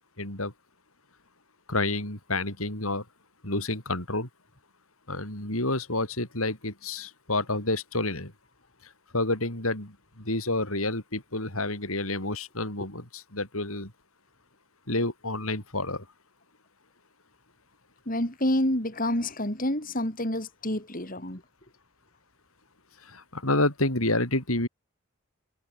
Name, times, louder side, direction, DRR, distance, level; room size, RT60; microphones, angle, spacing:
voice 1, 0.2-0.5 1.7-3.0 3.4-4.3 5.1-8.3 9.1-13.9 14.9-16.1 23.0-24.7, left 2 dB, 75° left, 7.8 m, -29 dB
voice 2, 18.1-21.4, left 1 dB, 40° left, 6.3 m, -28 dB
head